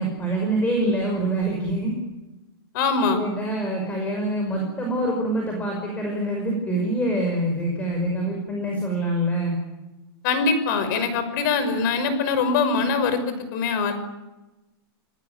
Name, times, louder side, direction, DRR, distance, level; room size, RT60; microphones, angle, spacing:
voice 1, 0.0-1.9 3.1-9.6, right 1 dB, 10° left, 1 dB, 5.9 m, -25 dB
voice 2, 2.7-3.2 10.2-13.9, left 4 dB, 50° left, 11 dB, 5.9 m, -23 dB
28.5 x 19.0 x 9.3 m, 1.0 s
supercardioid pair, 155°, 13 cm